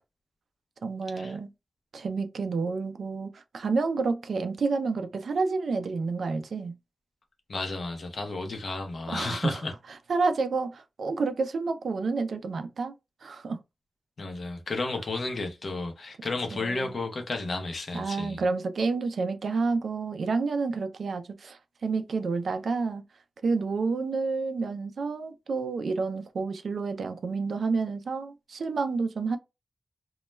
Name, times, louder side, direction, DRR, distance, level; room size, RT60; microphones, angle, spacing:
voice 1, 0.8-1.5 1.9-6.8 9.1-9.6 10.1-12.9 13.2-13.6 16.5-17.0 17.9-23.0 23.4-29.4, right 4 dB, 75° right, 0.3 m, -29 dB
voice 2, 7.5-9.7 14.2-18.4, left 3 dB, 55° left, 0.6 m, -32 dB
2.2 x 2.0 x 3.1 m
wide cardioid pair, 160°, 0 cm